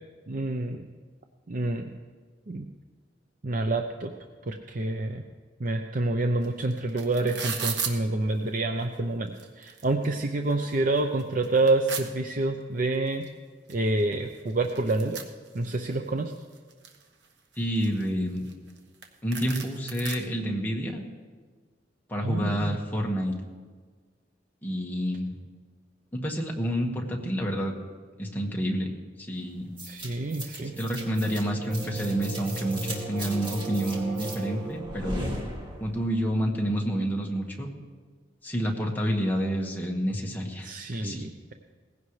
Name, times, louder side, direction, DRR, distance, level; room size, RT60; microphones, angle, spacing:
voice 1, 0.3-0.8 1.5-1.9 2.5-2.6 3.4-4.1 4.5-5.2 5.6-9.3 9.6-13.2 13.7-15.2 15.5-16.3 22.2-22.7 29.8-30.7 40.6-41.5, right 2 dB, 50° right, 4 dB, 0.7 m, -27 dB
sound 1, 6.4-6.5 6.7-7.9 8.8-8.9 9.3-10.1 10.5-10.6 11.0-12.0 13.2-13.3 13.7-13.8 14.0-15.9 16.4-17.0 17.5-18.8 19.0-19.1 19.3-20.2, right 6 dB, 70° right, 1.2 m, -35 dB
voice 2, 17.6-18.4 19.2-21.1 22.1-23.3 24.6-25.4 26.1-27.7 28.2-28.9 29.2-29.7 30.8-35.3 35.8-37.7 38.4-41.3, equal, 10° left, -1 dB, 1.6 m, -29 dB
sound 2, 29.8-36.1, right 2 dB, 25° right, 2.4 m, -35 dB
19.0 x 16.0 x 3.3 m, 1.5 s
head